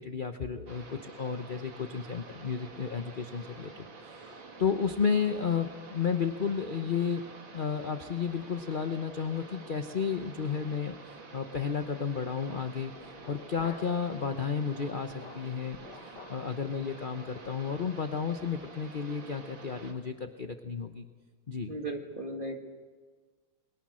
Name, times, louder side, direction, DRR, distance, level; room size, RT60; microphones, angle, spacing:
voice 1, 0.0-4.3 4.6-7.2 7.5-11.0 11.3-12.9 13.3-21.1 21.5-21.7, left 6 dB, 45° left, 7 dB, 0.6 m, -32 dB
sound 1, 0.7-19.9, right 3 dB, 70° right, 3.1 m, -49 dB
sound 2, 12.9-14.1 14.4-16.5 16.8-17.0 17.4-17.7 18.1-18.2 18.5-18.7, left 4 dB, 60° left, 2.3 m, -51 dB
voice 2, 21.7-22.6, right 2 dB, 25° right, 3 dB, 2.1 m, -36 dB
29.5 x 22.0 x 6.3 m, 1.5 s
omnidirectional pair, 2.2 m